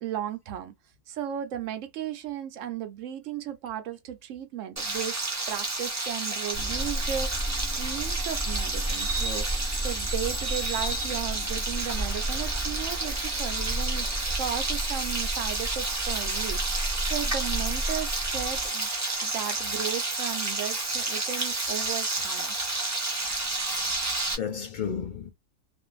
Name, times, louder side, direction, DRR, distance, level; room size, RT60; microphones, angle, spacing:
voice 1, 0.0-0.7 1.1-14.1 14.3-18.9 19.2-22.5, right 10 dB, 75° right, 0.9 m, -35 dB
Frying (food), 4.8-24.3, right 2 dB, 20° right, 0.5 m, -31 dB
sound 1, 6.5-18.7, right 1 dB, 20° left, 1.2 m, -33 dB
Bird vocalization bird call bird song, 6.9-14.5, right 3 dB, 40° right, 0.9 m, -39 dB
voice 2, 13.2-13.7 14.1-14.2 23.6-25.3, left 7 dB, 60° left, 0.5 m, -36 dB
2.5 x 2.4 x 2.3 m
omnidirectional pair, 1.4 m